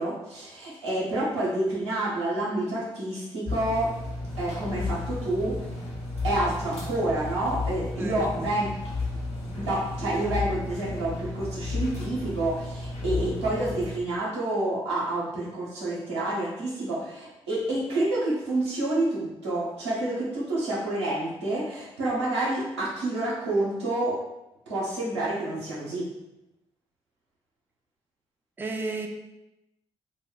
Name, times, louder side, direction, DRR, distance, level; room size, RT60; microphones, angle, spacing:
voice 1, 0.0-3.9 4.4-5.7 6.2-8.7 9.6-24.2 24.7-26.1, right 1 dB, 85° right, -7 dB, 0.7 m, -28 dB
sound 1, 3.4-14.0, left 3 dB, 45° left, 0.9 m, -33 dB
voice 2, 8.0-8.6 28.6-29.1, right 3 dB, 15° right, 3 dB, 0.4 m, -33 dB
2.1 x 2.1 x 3.7 m, 0.92 s
figure-of-eight pair, 40°, 14 cm